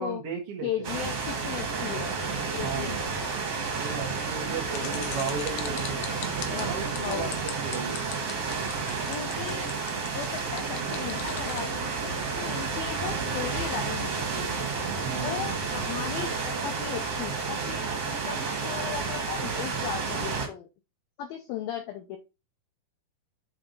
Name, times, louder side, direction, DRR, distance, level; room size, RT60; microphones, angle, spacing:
voice 1, 0.0-1.0 2.6-3.2 3.8-6.1 6.4-8.2 15.0-15.6, right 5 dB, 90° right, -1 dB, 1.2 m, -36 dB
voice 2, 0.6-2.2 2.5-3.0 4.8-5.4 6.5-7.4 9.1-9.7 10.1-14.5 15.2-20.7 21.2-22.2, left 10 dB, 90° left, 5 dB, 2.1 m, -37 dB
sound 1, 0.8-20.5, right 4 dB, 45° right, 2.0 m, -31 dB
sound 2, 4.7-11.6, left 12 dB, 75° left, 2.9 m, -39 dB
7.7 x 4.5 x 3.9 m, 0.27 s
omnidirectional pair, 5.2 m